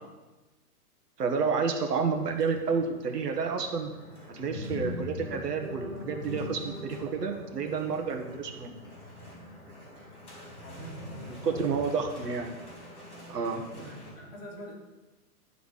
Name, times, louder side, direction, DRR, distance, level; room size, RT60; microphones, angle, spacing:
voice 1, 1.2-3.9 4.3-8.8 11.4-12.5 13.3-13.8, right 5 dB, 90° right, 4 dB, 1.7 m, -30 dB
sound 1, 1.9-14.1, left 2 dB, ahead, 0.6 m, -44 dB
sound 2, 3.3-3.5 5.1-7.5 11.4-13.4, right 1 dB, 20° right, 2.3 m, -46 dB
voice 2, 10.6-11.9 13.8-14.7, right 1 dB, 40° left, -3 dB, 2.6 m, -45 dB
10.5 x 5.0 x 6.6 m, 1.1 s
hypercardioid pair, 175°, 46 cm